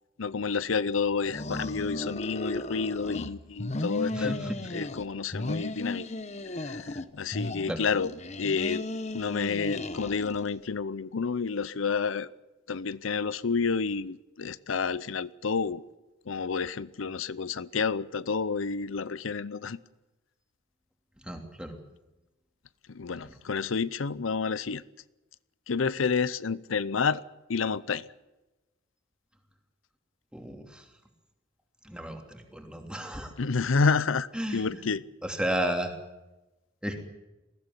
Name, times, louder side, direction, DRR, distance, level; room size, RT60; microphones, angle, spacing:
voice 1, 0.2-4.4 4.7-6.1 6.6-8.1 8.4-8.9 9.1-12.3 12.7-15.8 16.3-19.8 22.9-24.8 25.7-27.2 27.5-28.1 33.4-35.0, left 5 dB, 90° left, 17 dB, 0.7 m, -29 dB
sound 1, 1.2-3.3 3.6-5.1 5.3-7.1 7.3-10.5, left 2 dB, 35° left, 1.0 m, -35 dB
voice 2, 4.1-4.6 7.7-7.8 21.2-21.8 23.2-23.3 30.3-30.8 31.8-33.3 34.3-34.8 35.2-35.9 36.8-37.0, right 1 dB, 5° right, 4 dB, 2.9 m, -33 dB
20.5 x 15.5 x 9.9 m, 1.0 s
head